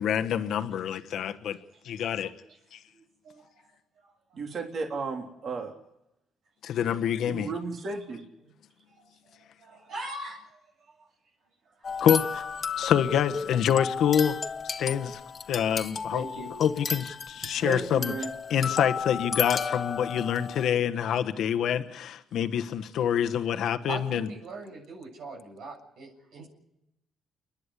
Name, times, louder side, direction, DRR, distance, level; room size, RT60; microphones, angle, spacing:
voice 1, 0.0-1.6 1.8-2.3 2.7-2.8 6.6-7.5 12.0-12.4 12.8-14.4 14.6-15.2 15.5-18.1 18.5-24.3, left 9 dB, 75° left, 8 dB, 1.2 m, -26 dB
voice 2, 2.9-3.7 4.0-4.4 9.0-9.1 9.6-10.6 10.9-11.1 11.8-12.0 16.1-16.5 23.9-26.5, right 2 dB, 80° right, 0 dB, 7.4 m, -41 dB
voice 3, 4.3-5.7 7.3-8.5 17.6-18.3, right 4 dB, 55° right, 2 dB, 3.5 m, -34 dB
sound 1, 11.8-20.7, left 6 dB, 40° left, 1.3 m, -33 dB
29.5 x 10.5 x 9.9 m, 0.86 s
cardioid pair, 90°, 0 cm